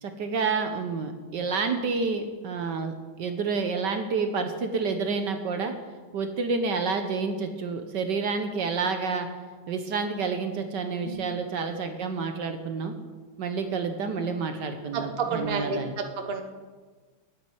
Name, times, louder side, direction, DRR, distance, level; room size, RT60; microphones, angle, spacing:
voice 1, 0.0-5.7 6.1-9.3 9.7-12.9 13.4-15.9, right 4 dB, 65° right, 7 dB, 1.5 m, -29 dB
voice 2, 14.9-15.8 16.3-16.4, right 4 dB, 35° right, 5 dB, 1.2 m, -29 dB
9.4 x 8.7 x 9.4 m, 1.4 s
omnidirectional pair, 2.2 m